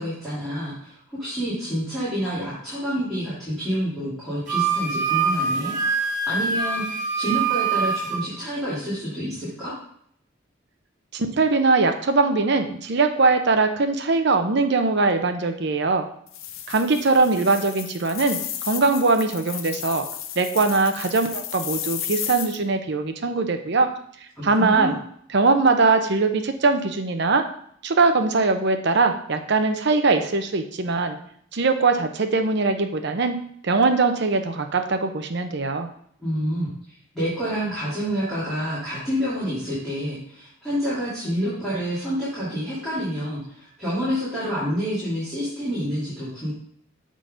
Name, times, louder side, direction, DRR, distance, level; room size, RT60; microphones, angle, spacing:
voice 1, 0.0-5.7 6.3-9.7 24.4-24.9 36.2-36.7 37.1-46.5, equal, ahead, -12 dB, 2.7 m, -28 dB
Wind instrument woodwind instrument, 4.5-8.2, right 5 dB, 40° right, 1.4 m, -24 dB
voice 2, 11.1-16.1 16.7-20.1 20.4-23.9 24.4-25.0 25.3-27.4 27.8-31.2 31.5-35.9, right 3 dB, 55° right, 6 dB, 0.7 m, -21 dB
sound 1, 16.3-22.6, left 10 dB, 80° left, 0.6 m, -33 dB
7.0 x 3.8 x 5.0 m, 0.66 s
head